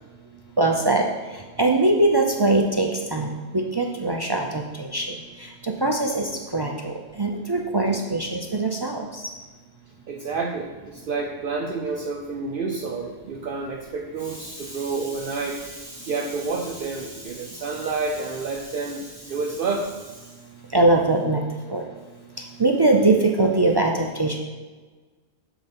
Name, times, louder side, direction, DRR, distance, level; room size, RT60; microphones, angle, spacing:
voice 1, 0.6-1.0 1.6-5.1 5.6-9.2 20.7-21.4 21.7-21.8 22.6-24.4, right 2 dB, 45° right, 1 dB, 0.3 m, -22 dB
voice 2, 10.1-20.4, right 4 dB, 60° right, 1 dB, 0.7 m, -29 dB
7.3 x 3.9 x 5.3 m, 1.3 s
omnidirectional pair, 1.1 m